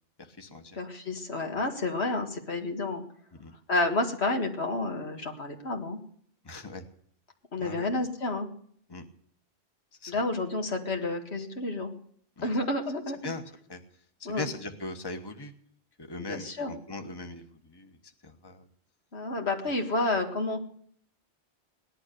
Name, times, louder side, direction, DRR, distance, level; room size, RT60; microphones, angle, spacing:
voice 1, 0.2-0.8 1.5-1.7 3.4-3.5 6.4-6.8 7.6-7.9 8.9-9.1 10.0-10.2 12.4-12.5 13.2-13.4 13.7-13.8 14.2-15.5 16.0-18.0 18.2-18.7, left 2 dB, 20° left, 5 dB, 1.3 m, -40 dB
voice 2, 0.8-3.0 3.7-6.0 7.5-8.5 10.1-12.0 12.4-13.3 14.3-14.5 16.2-16.7 19.1-20.6, left 2 dB, 75° left, 3 dB, 2.2 m, -30 dB
18.5 x 11.5 x 6.7 m, 0.63 s
omnidirectional pair, 1.1 m